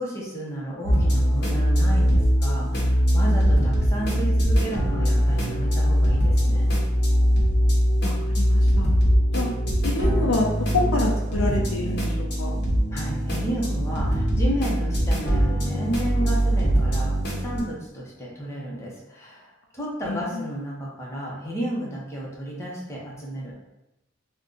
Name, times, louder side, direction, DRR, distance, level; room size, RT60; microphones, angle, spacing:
voice 1, 0.0-6.7 12.9-23.5, right 1 dB, 15° left, -5 dB, 0.7 m, -32 dB
sound 1, 0.8-17.6, equal, 55° left, 0.8 m, -21 dB
voice 2, 8.0-8.9 9.3-9.5 9.8-10.5 10.9-12.6 20.1-20.4, left 2 dB, 90° left, 0 dB, 0.6 m, -28 dB
2.6 x 2.2 x 3.7 m, 0.92 s
head